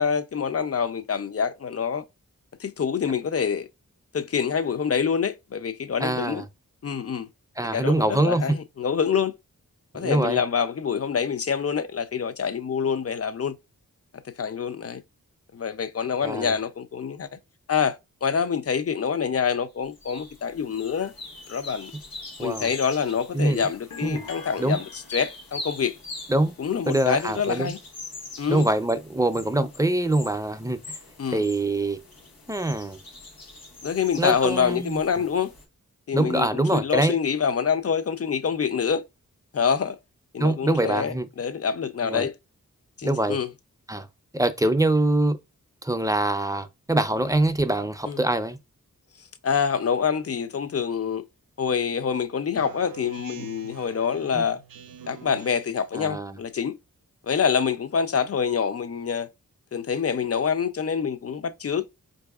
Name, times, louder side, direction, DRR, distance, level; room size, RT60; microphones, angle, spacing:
voice 1, 0.0-2.0 2.6-3.7 4.1-6.4 6.8-7.3 7.7-9.3 9.9-13.6 14.4-15.0 15.5-17.4 17.7-21.1 21.5-21.9 22.4-26.0 26.6-27.8 28.4-28.7 31.2-31.4 33.8-35.5 36.1-39.0 39.5-40.0 40.3-42.3 43.0-43.5 48.1-48.2 49.4-51.2 51.6-54.6 55.1-56.7 57.2-59.3 59.7-61.8, left 6 dB, 45° left, 0.5 m, -26 dB
voice 2, 6.0-6.4 7.6-8.5 9.9-10.4 16.2-16.5 22.4-22.7 23.3-23.7 24.0-24.2 24.6-24.8 26.3-26.6 26.9-27.7 28.5-31.0 31.3-32.0 32.5-33.0 34.2-35.0 36.1-37.2 40.4-41.3 42.0-42.3 43.0-43.4 43.9-44.1 44.3-45.4 45.8-48.6 54.3-54.4 55.9-56.4, right 1 dB, 10° right, 0.5 m, -24 dB
sound 1, 19.9-35.6, left 2 dB, 90° left, 1.1 m, -43 dB
sound 2, 23.9-25.7, left 4 dB, 70° left, 0.8 m, -44 dB
Speech synthesizer, 52.5-55.9, right 7 dB, 75° right, 0.5 m, -44 dB
4.5 x 2.6 x 2.3 m
cardioid pair, 40°, 35 cm